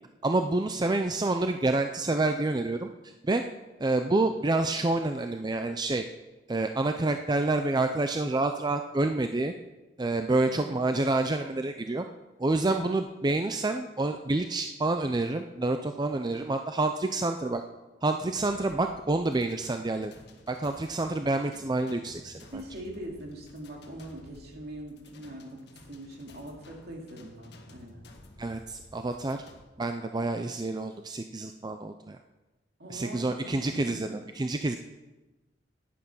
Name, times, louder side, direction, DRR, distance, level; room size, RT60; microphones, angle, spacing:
voice 1, 0.2-2.9 3.2-3.4 3.8-6.0 6.5-9.5 10.0-12.1 12.4-17.6 18.0-20.1 20.5-22.4 28.4-29.4 29.8-32.2 32.9-34.1 34.4-34.8, right 2 dB, 25° right, 6 dB, 0.5 m, -28 dB
voice 2, 10.5-10.8 22.5-28.0 32.8-34.2, right 1 dB, 60° right, 0 dB, 2.5 m, -42 dB
sound 1, 18.3-29.6, left 1 dB, 65° left, 1.4 m, -53 dB
10.5 x 10.0 x 5.5 m, 1.1 s
head